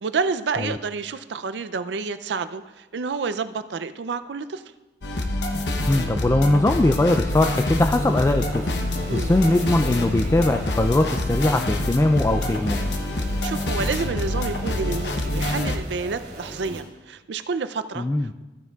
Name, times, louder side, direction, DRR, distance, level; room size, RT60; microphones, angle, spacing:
voice 1, 0.0-4.6 9.1-9.3 13.4-18.1, right 4 dB, 80° right, 11 dB, 0.5 m, -29 dB
sound 1, 5.0-15.8, left 1 dB, 75° left, 0.9 m, -26 dB
voice 2, 5.9-12.8 18.0-18.3, left 1 dB, 15° left, 6 dB, 0.3 m, -21 dB
sound 2, 7.7-16.8, right 1 dB, 65° right, 2.8 m, -38 dB
15.0 x 9.3 x 2.4 m, 1.1 s
head